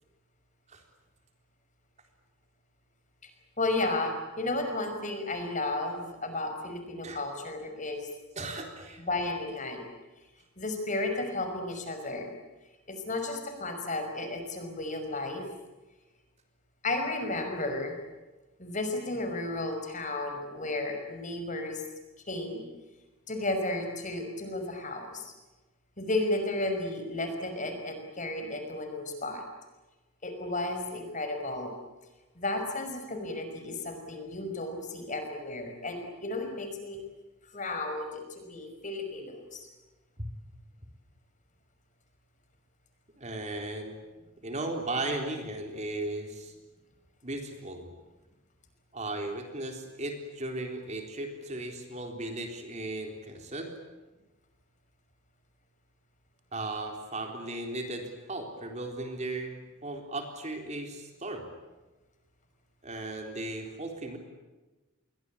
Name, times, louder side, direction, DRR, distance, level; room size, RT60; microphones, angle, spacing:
voice 1, 3.6-8.1 9.1-9.9 10.6-12.3 12.9-15.4 16.8-18.0 18.6-21.8 22.3-22.6 23.3-25.3 26.0-29.4 30.2-31.7 32.4-37.0 37.5-39.7, left 2 dB, 35° left, 6 dB, 5.6 m, -33 dB
voice 2, 8.4-9.0 40.2-40.3 43.2-44.0 44.4-46.5 47.2-47.9 48.9-53.7 56.5-59.5 59.8-61.5 62.8-64.2, right 2 dB, 30° right, 4 dB, 3.9 m, -36 dB
29.5 x 23.0 x 8.6 m, 1.2 s
head